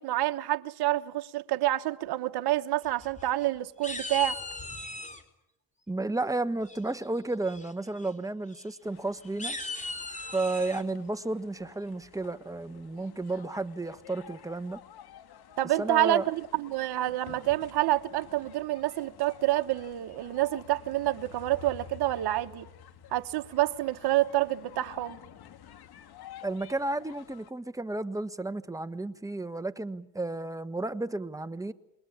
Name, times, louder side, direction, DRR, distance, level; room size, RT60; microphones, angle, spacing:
voice 1, 0.0-4.4 15.6-22.7 23.1-25.2, right 15 dB, 60° right, 1.3 m, -28 dB
sound 1, 2.9-3.5 3.8-5.2 6.7-7.1 7.5-7.7 8.0-8.1 8.5-8.6 9.2-10.8, left 2 dB, 15° left, 3.8 m, -38 dB
voice 2, 5.9-9.6 10.3-14.8 15.8-16.3 26.4-31.7, right 2 dB, 10° right, 1.4 m, -32 dB
sound 2, 8.8-27.5, left 9 dB, 60° left, 2.3 m, -51 dB
28.0 x 21.5 x 8.7 m
supercardioid pair, 75°, 43 cm